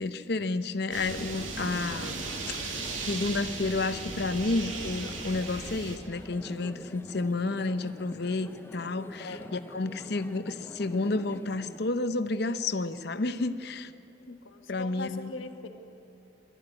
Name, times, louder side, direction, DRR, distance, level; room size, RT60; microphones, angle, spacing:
voice 1, 0.0-2.8 3.1-13.9 14.3-14.4 14.7-15.3, left 3 dB, 55° left, 10 dB, 0.7 m, -31 dB
sound 1, 0.9-6.0, right 3 dB, 85° right, 2.3 m, -37 dB
sound 2, 1.2-11.9, left 1 dB, 10° left, 0.5 m, -46 dB
voice 2, 14.4-15.7, left 3 dB, 85° left, 5 dB, 1.5 m, -40 dB
22.0 x 13.5 x 9.8 m, 2.9 s
head